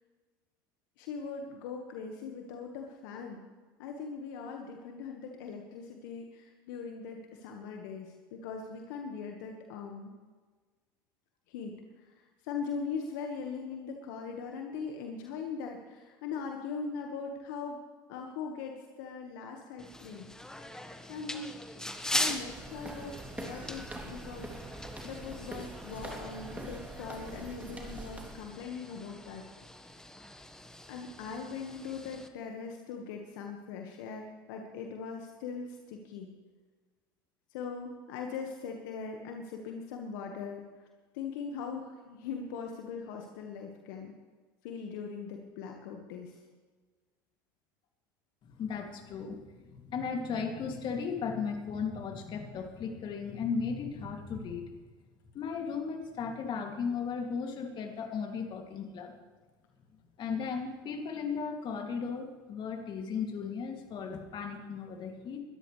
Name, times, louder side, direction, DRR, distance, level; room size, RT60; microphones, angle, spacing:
voice 1, 1.0-3.4 3.8-10.1 11.5-17.8 18.1-20.3 21.1-21.5 22.1-29.5 30.9-36.3 37.5-40.6 41.1-44.1 44.6-46.4, left 5 dB, 70° left, 2 dB, 1.7 m, -40 dB
sound 1, 19.8-32.3, left 1 dB, 5° left, 1.5 m, -41 dB
sound 2, 22.0-28.5, right 2 dB, 15° right, 2.9 m, -44 dB
voice 2, 48.4-54.7 55.3-59.1 60.2-65.4, left 5 dB, 45° left, 3 dB, 2.8 m, -36 dB
21.5 x 13.5 x 3.4 m, 1.4 s
hypercardioid pair, 80°, 11 cm